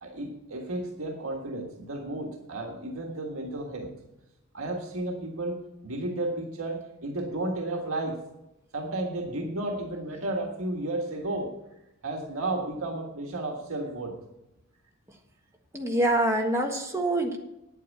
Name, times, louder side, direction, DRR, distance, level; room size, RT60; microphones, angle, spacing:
voice 1, 0.0-4.0 4.5-8.3 8.7-11.6 12.0-14.2, right 2 dB, 75° right, 2 dB, 1.6 m, -33 dB
voice 2, 15.7-17.4, right 1 dB, 15° right, 2 dB, 1.4 m, -25 dB
9.4 x 8.9 x 7.2 m, 0.92 s
head